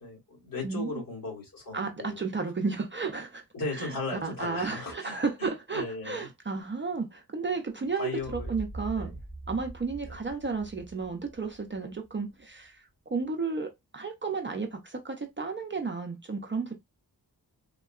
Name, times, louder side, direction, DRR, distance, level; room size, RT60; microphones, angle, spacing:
voice 1, 0.0-2.2 3.5-6.3 7.9-8.6 9.0-9.2 10.1-10.2, left 3 dB, 55° left, 1.7 m, -37 dB
voice 2, 0.6-1.0 1.7-3.4 3.7-9.1 9.5-16.7, right 4 dB, 30° right, 0.4 m, -33 dB
sound 1, 8.2-12.0, right 2 dB, 40° left, 1.5 m, -42 dB
3.6 x 2.2 x 2.3 m
wide cardioid pair, 105°, 39 cm